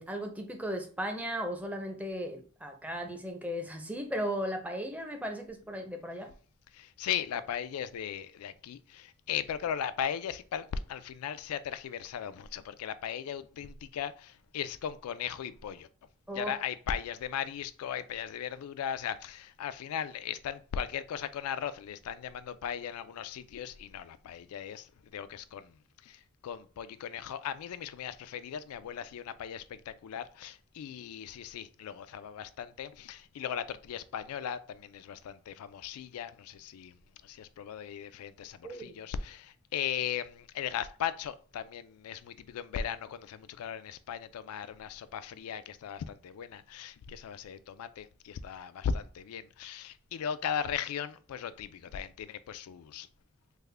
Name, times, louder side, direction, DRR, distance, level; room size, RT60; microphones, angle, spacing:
voice 1, 0.0-6.3 16.3-16.5 38.6-39.0, equal, 5° right, 0.5 m, -36 dB
voice 2, 6.7-15.9 16.3-25.8 26.0-37.0 37.2-53.1, left 8 dB, 85° left, 0.3 m, -37 dB
3.5 x 2.1 x 3.3 m
head